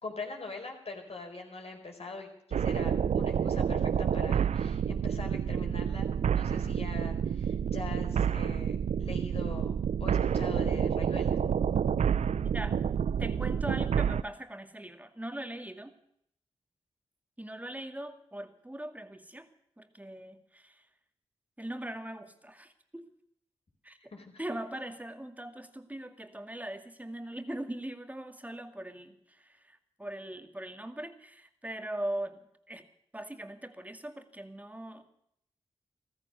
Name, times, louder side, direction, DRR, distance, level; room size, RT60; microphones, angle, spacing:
voice 1, 0.0-11.4 24.1-24.3, left 3 dB, 60° left, 2 dB, 4.6 m, -43 dB
sound 1, 2.5-14.2, right 7 dB, 75° right, 0.6 m, -29 dB
voice 2, 13.2-15.9 17.4-19.5 19.8-20.8 21.6-23.1 23.8-24.0 24.4-32.4 32.7-32.8 33.1-35.1, right 1 dB, 15° right, 7 dB, 2.2 m, -40 dB
14.5 x 14.5 x 6.9 m, 0.70 s
cardioid pair, 45°, 12 cm